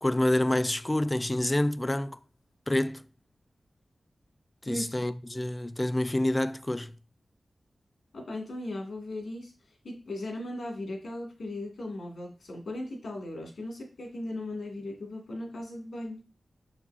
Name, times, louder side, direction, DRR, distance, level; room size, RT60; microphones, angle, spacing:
voice 1, 0.0-2.2 2.7-3.0 4.6-6.9, left 1 dB, 25° left, 0.4 m, -27 dB
voice 2, 8.1-9.5 9.8-16.2, left 1 dB, 85° left, 2.5 m, -37 dB
6.1 x 6.0 x 2.7 m
cardioid pair, 45°, 0 cm